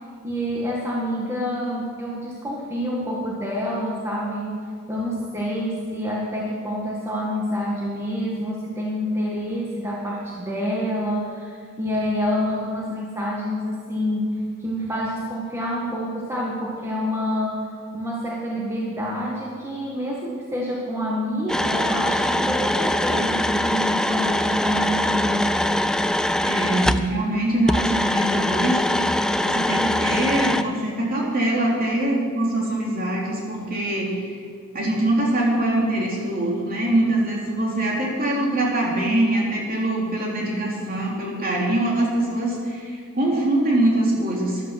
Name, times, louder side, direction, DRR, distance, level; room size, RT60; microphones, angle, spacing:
voice 1, 0.2-25.7, equal, 15° right, -4 dB, 1.8 m, -27 dB
sound 1, 21.5-27.1 27.7-30.6, left 1 dB, 5° left, 0.4 m, -22 dB
voice 2, 26.4-28.8 29.4-34.3 34.7-44.6, right 1 dB, 45° right, -3 dB, 3.5 m, -23 dB
14.0 x 11.5 x 6.0 m, 2.1 s
head